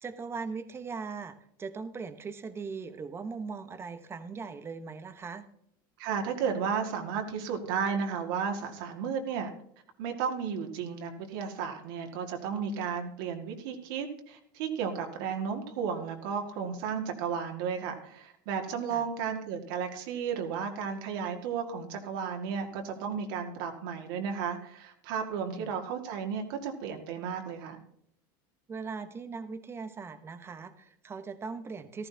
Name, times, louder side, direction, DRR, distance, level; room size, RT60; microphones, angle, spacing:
voice 1, 0.0-5.5 18.9-19.1 25.3-25.7 28.7-32.1, right 5 dB, 20° right, 10 dB, 1.0 m, -40 dB
voice 2, 6.0-9.5 10.0-27.8, right 6 dB, 70° right, 3 dB, 2.0 m, -33 dB
14.5 x 14.0 x 2.8 m, 0.71 s
supercardioid pair, 125°, 12 cm